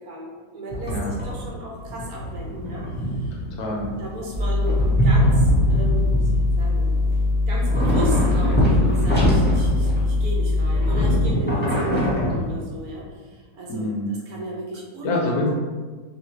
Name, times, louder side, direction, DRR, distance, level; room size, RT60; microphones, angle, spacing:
voice 1, 0.0-1.0 1.2-3.4 4.0-6.3 6.6-6.9 7.5-15.3, equal, 65° right, -3 dB, 1.1 m, -34 dB
sound 1, 0.7-1.5 1.8-4.3 4.6-7.2 7.5-10.2 10.5-12.9, equal, 5° left, 1.0 m, -23 dB
sound 2, 4.3-11.3, left 2 dB, 85° left, 1.4 m, -22 dB
voice 2, 13.7-14.1 15.0-15.5, left 2 dB, 70° left, -2 dB, 1.1 m, -25 dB
3.7 x 2.6 x 3.1 m, 1.4 s
omnidirectional pair, 1.8 m